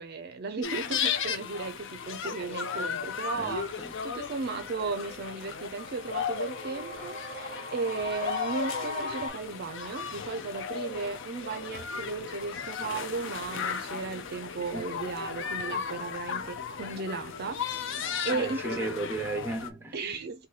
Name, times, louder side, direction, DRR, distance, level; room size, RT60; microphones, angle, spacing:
voice 1, 0.0-18.9 19.9-20.5, right 4 dB, 50° right, 0.5 m, -35 dB
sound 1, 0.6-19.7, left 6 dB, 65° left, 0.5 m, -35 dB
voice 2, 3.3-3.9 14.7-14.8 18.3-20.0, right 3 dB, 10° right, 0.9 m, -35 dB
sound 2, 4.1-9.3, left 2 dB, 45° left, 1.3 m, -40 dB
3.0 x 2.7 x 4.0 m
head